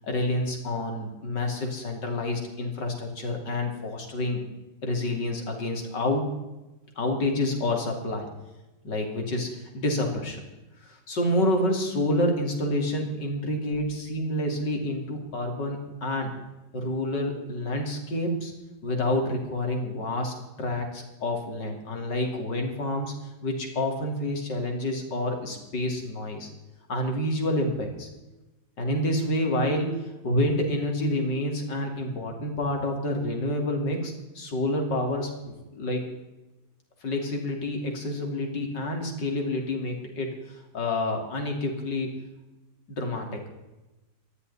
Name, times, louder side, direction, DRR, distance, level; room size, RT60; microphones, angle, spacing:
voice 1, 0.0-4.4 4.8-6.3 7.0-8.3 8.8-10.4 10.8-16.3 16.7-18.5 18.8-23.1 23.4-26.5 26.9-28.1 28.8-36.0 37.0-42.1 42.9-43.4, left 1 dB, 80° left, 3 dB, 3.6 m, -28 dB
20.0 x 14.0 x 4.2 m, 1.0 s
omnidirectional pair, 1.9 m